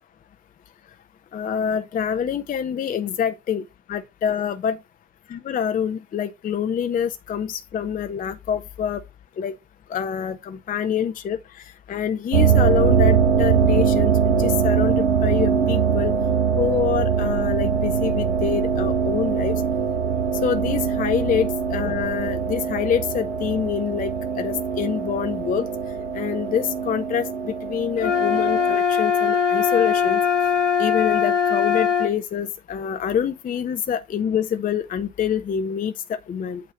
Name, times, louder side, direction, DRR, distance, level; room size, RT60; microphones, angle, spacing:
voice 1, 1.3-3.6 3.9-4.8 5.4-9.0 9.4-9.5 9.9-11.4 11.9-16.1 16.6-19.6 20.4-25.7 26.1-30.2 30.8-36.6, left 8 dB, 25° left, 0.6 m, -26 dB
sound 1, 12.3-28.8, right 6 dB, 80° right, 0.9 m, -22 dB
sound 2, 28.0-32.1, left 7 dB, 80° left, 0.9 m, -21 dB
8.5 x 2.9 x 5.6 m
figure-of-eight pair, 65°, 36 cm